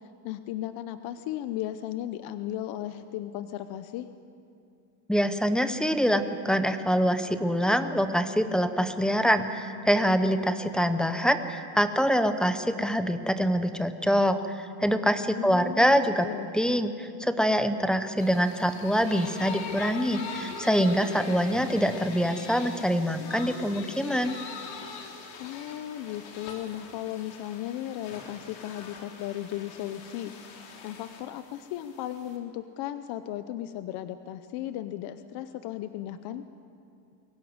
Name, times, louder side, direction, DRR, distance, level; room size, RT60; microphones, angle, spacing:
voice 1, 0.2-4.1 15.3-16.5 25.4-36.4, left 12 dB, 50° left, 11 dB, 0.8 m, -36 dB
voice 2, 5.1-16.3 16.5-24.4, equal, ahead, 9 dB, 0.6 m, -25 dB
sound 1, 18.2-32.4, left 5 dB, 70° left, 3.8 m, -42 dB
23.0 x 17.5 x 9.5 m, 2.5 s
cardioid pair, 160°, 50 cm